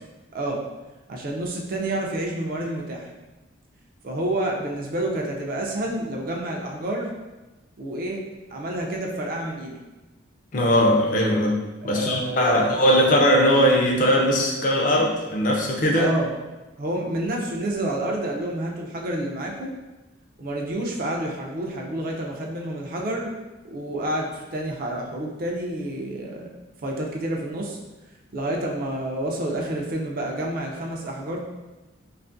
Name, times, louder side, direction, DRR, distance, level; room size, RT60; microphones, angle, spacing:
voice 1, 1.1-3.1 4.0-7.1 7.8-8.2 8.5-9.7 11.8-12.6 15.9-16.3 16.8-19.7 20.4-23.3 23.6-26.5 26.8-27.8 28.3-31.4, right 1 dB, 45° right, 0 dB, 0.4 m, -29 dB
voice 2, 10.5-16.1, equal, 40° left, 0 dB, 0.4 m, -20 dB
2.5 x 2.4 x 2.5 m, 1.1 s
head